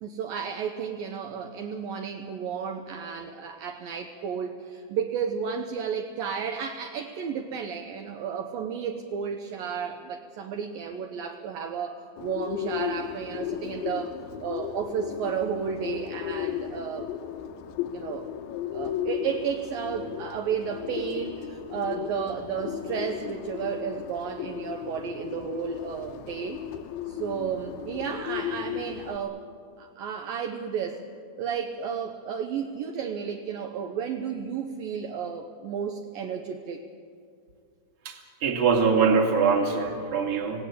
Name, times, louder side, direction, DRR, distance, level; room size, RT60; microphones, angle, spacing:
voice 1, 0.0-14.1 14.4-17.3 17.9-18.3 18.7-26.6 27.1-29.4 29.8-31.0 31.4-36.8, right 7 dB, 70° right, 4 dB, 2.5 m, -33 dB
Bird, 12.2-29.2, left 9 dB, 75° left, 2.8 m, -35 dB
voice 2, 38.0-40.6, right 5 dB, 40° right, 3 dB, 2.8 m, -23 dB
27.5 x 18.0 x 8.4 m, 2.3 s
omnidirectional pair, 4.7 m